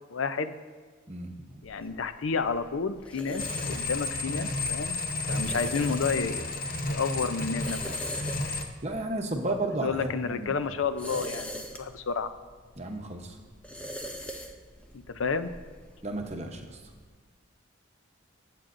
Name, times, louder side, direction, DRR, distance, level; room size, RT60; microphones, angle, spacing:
voice 1, 0.1-0.5 1.6-5.0 5.3-6.5 6.9-8.0 9.8-12.3 14.9-15.5, left 5 dB, 75° left, 11 dB, 0.5 m, -31 dB
voice 2, 1.1-1.6 5.4-5.6 8.5-10.6 12.8-13.4 16.0-16.8, right 2 dB, 30° right, 3 dB, 0.9 m, -33 dB
sound 1, 1.6-17.1, equal, 5° left, 0.5 m, -44 dB
sound 2, 3.4-8.6, left 2 dB, 45° left, 0.8 m, -32 dB
20.0 x 7.5 x 2.6 m, 1.4 s
head